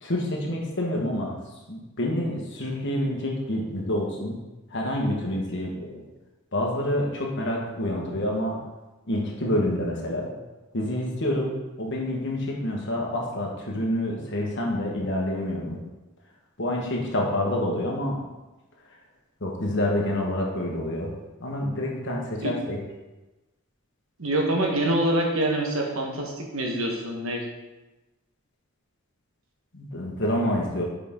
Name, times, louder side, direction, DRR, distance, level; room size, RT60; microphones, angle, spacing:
voice 1, 0.0-1.3 1.7-4.3 4.7-6.1 6.5-8.6 9.1-10.3 10.7-11.5 11.8-15.8 16.6-18.2 19.4-21.1 21.4-22.8 29.7-30.8, left 1 dB, 55° left, -1 dB, 1.3 m, -27 dB
voice 2, 24.2-27.4, right 1 dB, 60° right, 1 dB, 1.2 m, -25 dB
6.7 x 5.1 x 3.7 m, 1.1 s
head